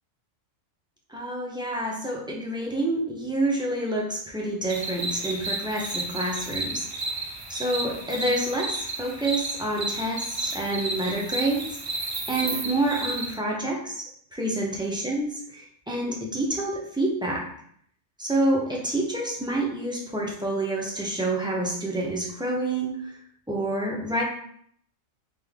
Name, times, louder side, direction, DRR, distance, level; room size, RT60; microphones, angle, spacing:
voice 1, 1.1-7.1 7.5-12.0 12.3-17.5 18.2-23.2 23.5-24.2, right 1 dB, 5° right, -3 dB, 0.5 m, -28 dB
sound 1, 4.7-13.3, right 2 dB, 50° right, 0.4 m, -32 dB
3.8 x 3.3 x 3.5 m, 0.65 s
omnidirectional pair, 1.4 m